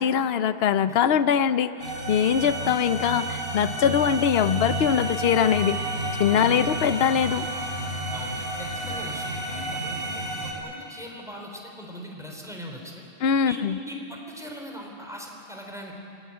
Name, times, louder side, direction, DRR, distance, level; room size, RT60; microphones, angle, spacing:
voice 1, 0.0-5.8 6.2-7.4 13.2-13.8, left 8 dB, 70° left, 12 dB, 0.9 m, -22 dB
sound 1, 1.8-10.5, right 1 dB, 60° right, 4.2 m, -31 dB
voice 2, 6.4-6.7 8.1-13.0 13.4-16.0, equal, 5° right, 0 dB, 3.6 m, -40 dB
25.0 x 16.0 x 9.6 m, 2.7 s
omnidirectional pair, 1.1 m